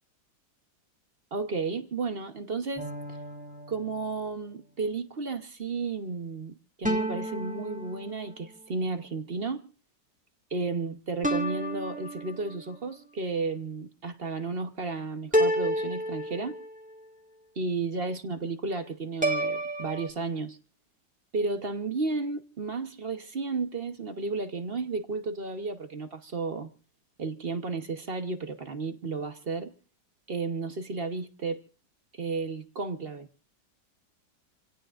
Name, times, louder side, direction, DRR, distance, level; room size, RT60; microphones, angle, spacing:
voice 1, 1.3-2.9 3.7-9.7 10.5-16.6 17.6-20.6 21.3-26.7 27.2-29.7 30.3-31.6 32.1-33.3, right 3 dB, 40° right, 1.1 m, -33 dB
sound 1, 2.8-4.4 6.8-8.5 11.2-12.7 15.3-16.9 19.2-20.1, right 1 dB, 5° right, 1.7 m, -30 dB
28.0 x 17.5 x 2.5 m
omnidirectional pair, 1.9 m